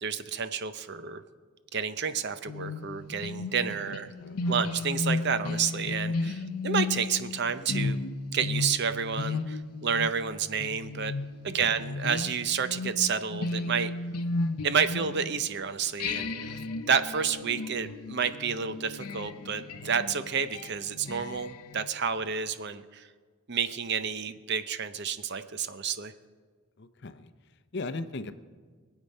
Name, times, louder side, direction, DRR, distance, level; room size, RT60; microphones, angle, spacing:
voice 1, 0.0-1.2 1.7-4.1 4.5-8.0 8.3-11.1 11.4-13.9 14.6-16.6 16.9-23.1 23.5-26.1, right 6 dB, 50° right, 12 dB, 0.6 m, -30 dB
sound 1, 2.5-15.5 16.0-21.9, left 3 dB, 90° left, 0.8 m, -34 dB
voice 2, 3.6-4.7 11.4-11.8 26.8-28.3, left 2 dB, 50° left, 11 dB, 0.6 m, -40 dB
23.0 x 8.2 x 5.4 m, 1.5 s
head